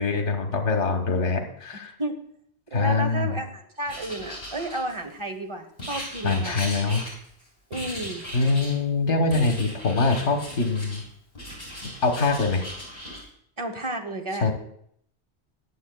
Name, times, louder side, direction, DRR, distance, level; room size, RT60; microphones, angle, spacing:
voice 1, 0.0-1.9 2.7-3.3 6.2-7.0 8.3-11.0 11.8-12.6 14.4-14.5, left 3 dB, 85° left, 5 dB, 1.5 m, -24 dB
voice 2, 2.7-6.8 7.7-8.2 13.6-14.5, right 1 dB, 30° right, 6 dB, 1.0 m, -32 dB
Writing, 3.9-5.2 5.8-7.4 7.7-8.8 9.3-11.0 11.3-13.2, equal, 55° left, 5.0 m, -38 dB
21.0 x 7.1 x 2.3 m, 0.69 s
omnidirectional pair, 1.2 m